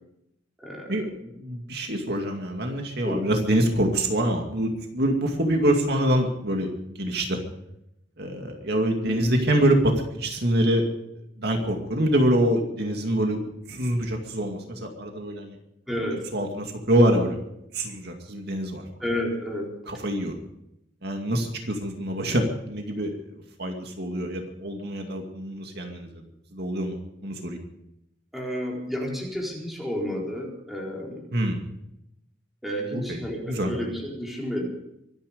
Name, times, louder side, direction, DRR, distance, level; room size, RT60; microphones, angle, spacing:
voice 1, 0.6-1.1 3.0-3.3 9.1-9.3 15.9-16.2 19.0-19.7 28.3-31.3 32.6-34.7, equal, ahead, -2 dB, 4.2 m, -31 dB
voice 2, 1.3-6.7 7.0-7.4 8.2-10.9 11.4-13.4 13.7-15.6 16.3-17.4 17.7-18.8 19.9-20.3 21.0-26.2 26.5-27.6 31.3-31.6 32.9-33.2 33.5-33.7, right 1 dB, 55° right, 3 dB, 2.3 m, -25 dB
24.5 x 10.5 x 5.2 m, 0.82 s
head